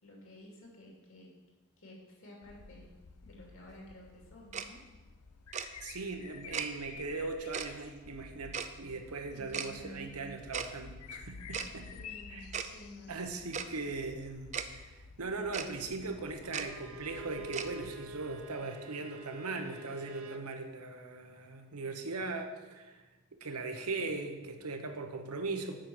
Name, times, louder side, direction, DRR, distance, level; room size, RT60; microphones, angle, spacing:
voice 1, 0.0-1.3 1.8-2.9 3.2-4.8 9.3-10.3 11.9-13.1, left 1 dB, 60° left, -2 dB, 2.7 m, -52 dB
sound 1, 2.4-18.4, left 5 dB, 85° left, 0.6 m, -52 dB
Tick-tock, 4.5-4.7 5.5-5.7 6.5-6.7 7.5-7.7 8.5-8.7 9.5-9.7 10.5-10.7 11.5-11.7 12.5-12.7 13.5-13.7 14.5-14.7 15.5-15.7 16.5-16.7 17.5-17.7, right 7 dB, 30° right, 0.4 m, -36 dB
voice 2, 5.8-11.9 12.3-12.5 13.1-23.0 23.4-25.8, right 3 dB, 90° right, 5 dB, 1.0 m, -39 dB
Bowed string instrument, 16.4-20.5, right 2 dB, 70° right, 0.6 m, -47 dB
7.5 x 6.0 x 7.2 m, 1.2 s
head